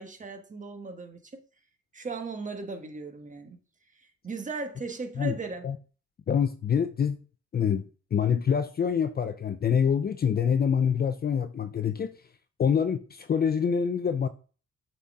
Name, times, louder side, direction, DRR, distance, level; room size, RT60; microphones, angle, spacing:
voice 1, 0.0-1.4 1.9-3.6 3.9-5.7, right 3 dB, 25° right, 1.4 m, -37 dB
voice 2, 6.3-7.2 7.5-12.2 12.6-14.3, left 7 dB, 35° left, 0.5 m, -26 dB
7.0 x 4.3 x 3.7 m
cardioid pair, 85°, 29 cm